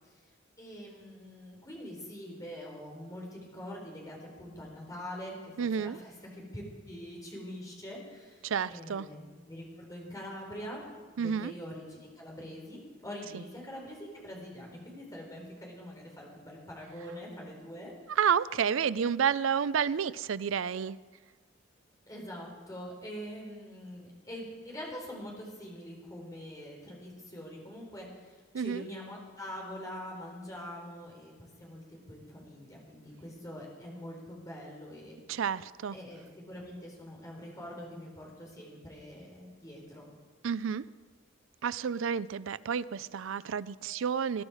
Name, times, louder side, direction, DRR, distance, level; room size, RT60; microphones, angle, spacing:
voice 1, 0.6-5.5 5.8-10.8 11.1-18.2 22.1-35.2 35.9-40.1, equal, 20° left, -1 dB, 4.1 m, -44 dB
voice 2, 5.6-6.0 8.4-9.1 11.2-11.5 13.3-13.4 18.1-21.0 28.5-28.9 35.3-36.0 40.4-40.8 41.6-44.4, right 7 dB, 80° right, 18 dB, 0.4 m, -30 dB
20.5 x 12.0 x 4.9 m, 1.4 s
head